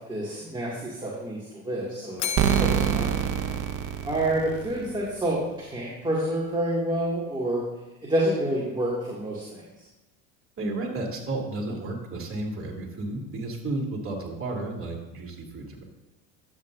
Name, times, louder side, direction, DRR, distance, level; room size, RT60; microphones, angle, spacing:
voice 1, 0.0-2.3 2.6-3.5 4.0-7.6 8.0-9.6, right 1 dB, 10° right, -6 dB, 2.4 m, -28 dB
Bell, 2.2-4.4, left 7 dB, 45° left, 1.0 m, -36 dB
sound 1, 2.4-5.1, right 9 dB, 50° right, 0.7 m, -26 dB
voice 2, 10.6-15.8, right 2 dB, 35° right, -2 dB, 2.9 m, -32 dB
12.0 x 8.3 x 2.7 m, 1.0 s
supercardioid pair, 85°, 40 cm